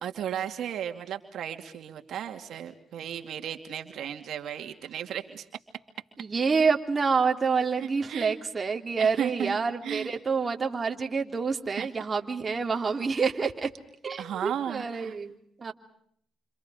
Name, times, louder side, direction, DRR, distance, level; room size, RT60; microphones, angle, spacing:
voice 1, 0.0-5.5 7.8-8.3 9.0-10.1 11.8-11.9 14.2-15.2, right 9 dB, 70° right, 6 dB, 2.5 m, -35 dB
voice 2, 6.2-13.7 14.0-15.7, right 5 dB, 30° right, 3 dB, 3.3 m, -27 dB
29.5 x 26.5 x 5.1 m, 0.66 s
cardioid pair, 90°, 0 cm